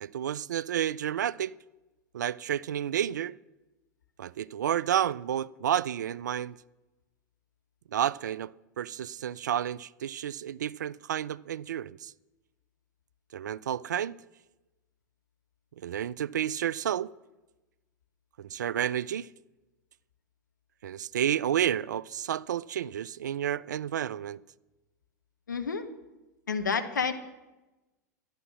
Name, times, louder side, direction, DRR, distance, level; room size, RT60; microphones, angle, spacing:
voice 1, 0.0-1.5 2.1-3.4 4.2-6.6 7.9-8.5 8.8-12.1 13.3-14.2 15.8-17.1 18.4-19.3 20.8-24.4, right 10 dB, 75° right, 0.4 m, -30 dB
voice 2, 25.5-25.8 26.5-27.1, left 5 dB, 85° left, 1.3 m, -29 dB
12.5 x 11.0 x 6.1 m
figure-of-eight pair, 90°, 10 cm